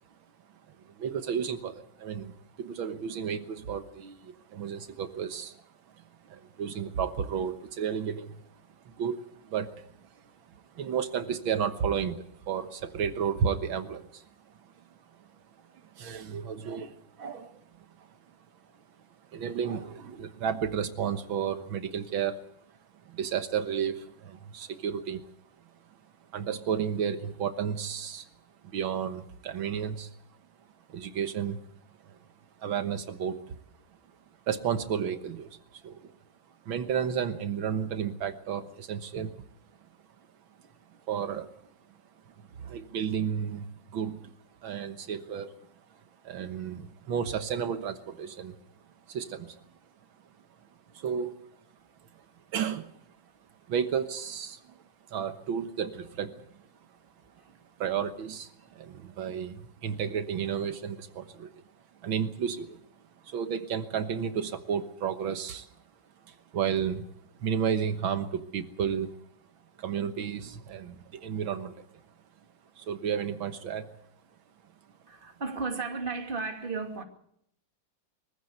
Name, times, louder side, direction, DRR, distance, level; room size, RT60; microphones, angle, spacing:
voice 1, 0.7-5.6 5.9-8.4 8.9-10.1 10.5-14.3 14.6-15.3 15.8-18.1 19.3-22.4 23.1-25.3 26.3-28.3 28.6-30.1 30.9-31.6 32.0-32.2 32.6-33.6 34.5-36.1 36.7-39.4 41.1-41.6 42.3-44.3 44.6-45.5 46.2-48.6 49.1-49.6 50.9-51.4 52.5-52.9 53.7-54.8 55.1-56.7 57.8-61.5 62.0-62.8 63.2-65.7 66.3-67.1 67.4-69.2 69.8-71.8 72.8-73.9, right 7 dB, 85° right, 2.0 m, -32 dB
voice 2, 58.7-59.1 75.1-77.0, right 4 dB, 25° right, 2.6 m, -35 dB
24.0 x 15.5 x 8.0 m
omnidirectional pair, 2.1 m